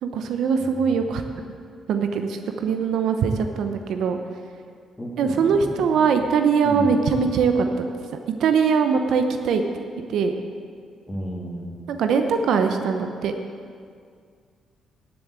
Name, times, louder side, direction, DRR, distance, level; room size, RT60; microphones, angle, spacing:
voice 1, 0.0-1.2 1.9-4.2 5.2-7.7 8.4-9.6 10.1-10.3 11.9-13.3, right 6 dB, 75° right, 6 dB, 0.8 m, -21 dB
voice 2, 5.0-6.2 6.6-7.0 11.1-11.7, right 1 dB, 10° left, -2 dB, 2.7 m, -33 dB
10.5 x 7.2 x 8.2 m, 2.2 s
cardioid pair, 90°, 0 cm